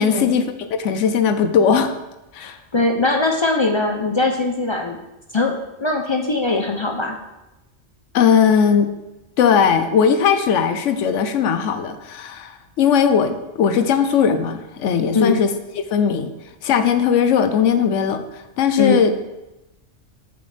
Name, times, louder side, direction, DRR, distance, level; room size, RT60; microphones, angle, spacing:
voice 1, 0.0-1.9 2.3-2.6 8.1-8.9 9.4-15.5 15.9-16.3 16.6-19.1, left 7 dB, 75° left, 10 dB, 1.0 m, -18 dB
voice 2, 2.7-5.0 5.3-7.2 15.1-15.4 18.8-19.0, left 3 dB, 45° left, 2 dB, 0.3 m, -20 dB
8.0 x 6.9 x 3.3 m, 0.98 s
omnidirectional pair, 1.3 m